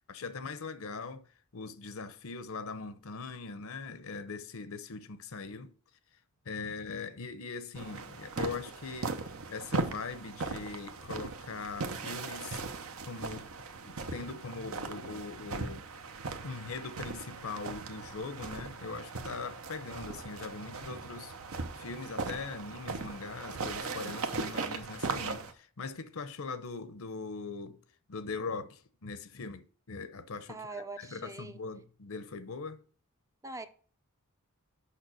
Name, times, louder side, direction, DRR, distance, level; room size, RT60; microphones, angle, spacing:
voice 1, 0.1-1.3 1.5-5.7 6.5-9.2 9.5-12.6 13.0-13.5 13.9-15.8 16.4-21.3 21.8-27.8 28.1-32.8, left 4 dB, 65° left, 0.8 m, -41 dB
sound 1, 7.7-25.5, right 3 dB, 65° right, 0.9 m, -38 dB
voice 2, 30.5-31.6 33.4-33.7, right 3 dB, 15° right, 0.5 m, -42 dB
6.7 x 5.8 x 6.2 m
head